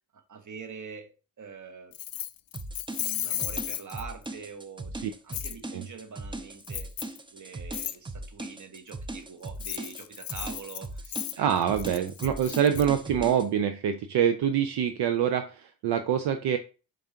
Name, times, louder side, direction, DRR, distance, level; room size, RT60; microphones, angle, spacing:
voice 1, 0.1-1.9 3.0-6.9 7.3-11.7, right 5 dB, 45° right, 1.0 m, -44 dB
Keys jangling, 1.9-4.3 5.3-5.6 6.6-7.2 7.7-8.0 9.5-12.8, left 12 dB, 55° left, 0.5 m, -35 dB
sound 1, 2.5-13.5, right 2 dB, 10° right, 0.5 m, -39 dB
voice 2, 11.4-16.6, right 9 dB, 70° right, 0.5 m, -25 dB
4.6 x 3.8 x 2.8 m
supercardioid pair, 50°, 42 cm